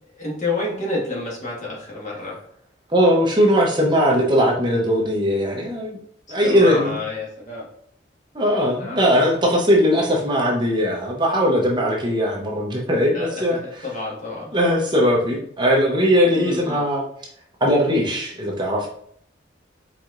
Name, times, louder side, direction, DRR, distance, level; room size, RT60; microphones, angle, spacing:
voice 1, 0.1-2.4 6.3-7.7 8.7-9.3 13.1-14.5 16.4-16.8, left 2 dB, 40° left, -3 dB, 1.5 m, -29 dB
voice 2, 2.9-5.9 6.3-7.0 8.3-13.6 14.5-17.0 17.6-18.9, equal, 25° right, -1 dB, 0.7 m, -19 dB
4.6 x 4.1 x 2.5 m, 0.65 s
head